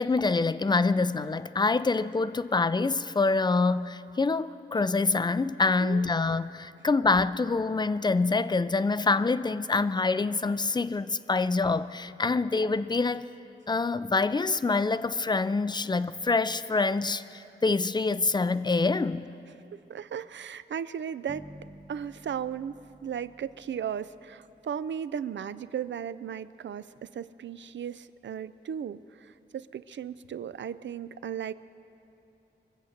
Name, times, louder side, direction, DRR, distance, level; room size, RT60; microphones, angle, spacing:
voice 1, 0.0-13.3 13.7-19.3, left 3 dB, 25° left, 0.4 m, -26 dB
voice 2, 19.9-21.5 21.9-31.5, right 8 dB, 85° right, 0.4 m, -36 dB
sound 1, 21.3-25.3, equal, ahead, 0.8 m, -52 dB
24.0 x 8.1 x 6.5 m
wide cardioid pair, 110°, 19 cm